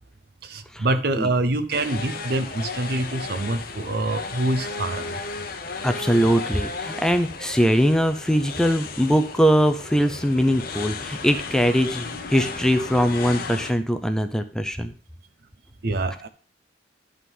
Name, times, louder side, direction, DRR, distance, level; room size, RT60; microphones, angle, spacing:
voice 1, 0.4-5.2 15.8-16.3, right 2 dB, 60° right, 11 dB, 0.8 m, -25 dB
sound 1, 1.7-13.7, left 4 dB, 55° left, 0.9 m, -34 dB
voice 2, 5.8-14.9, equal, 5° left, 8 dB, 0.5 m, -21 dB
11.0 x 3.8 x 5.3 m, 0.39 s
head